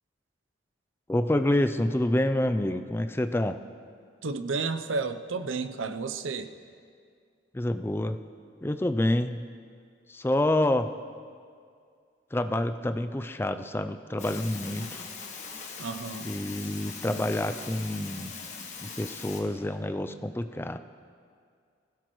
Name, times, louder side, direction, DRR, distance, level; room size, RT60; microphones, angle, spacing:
voice 1, 1.1-3.6 7.5-8.2 8.6-9.4 10.1-10.9 12.3-15.0 16.2-18.3 18.8-20.8, left 1 dB, 10° left, 10 dB, 0.3 m, -27 dB
voice 2, 4.2-6.5 15.8-16.2, right 4 dB, 85° right, 9 dB, 0.7 m, -31 dB
sound 1, 14.2-19.4, left 4 dB, 35° left, 1.4 m, -41 dB
20.0 x 16.0 x 3.1 m, 2.2 s
head